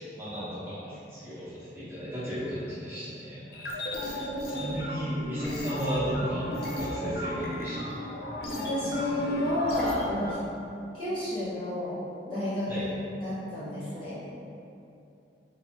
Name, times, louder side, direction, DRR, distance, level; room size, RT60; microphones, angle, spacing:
voice 1, 0.0-3.7 3.9-6.4 6.8-8.1 12.7-12.8, equal, 10° right, -13 dB, 1.0 m, -35 dB
sound 1, 3.5-10.3, equal, 60° left, 0.4 m, -34 dB
voice 2, 8.5-10.4 10.9-12.0 12.3-12.9 13.2-14.2, left 1 dB, 30° left, -12 dB, 0.8 m, -31 dB
3.4 x 2.8 x 2.5 m, 2.7 s
head